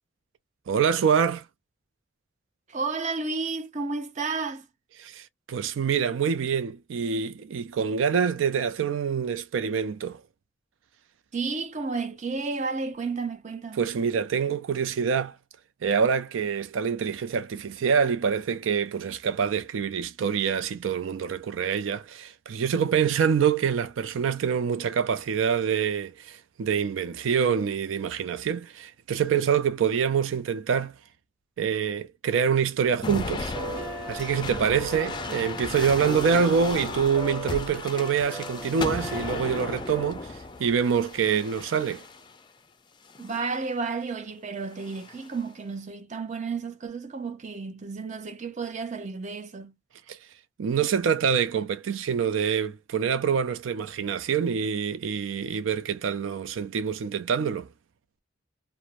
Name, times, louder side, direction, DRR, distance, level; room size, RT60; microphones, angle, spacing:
voice 1, 0.7-1.5 5.0-10.2 13.8-15.4 15.8-30.9 31.6-33.5 34.1-42.1 50.1-50.2 50.6-57.7, right 7 dB, 85° right, 0.4 m, -26 dB
voice 2, 2.7-4.7 11.3-13.9 43.2-49.7, right 4 dB, 40° right, 0.6 m, -32 dB
sound 1, 33.0-42.4 43.1-43.6 44.7-45.4, left 3 dB, 25° left, 0.4 m, -36 dB
sound 2, 33.4-40.1, right 1 dB, 15° right, 1.0 m, -38 dB
2.5 x 2.0 x 3.0 m
head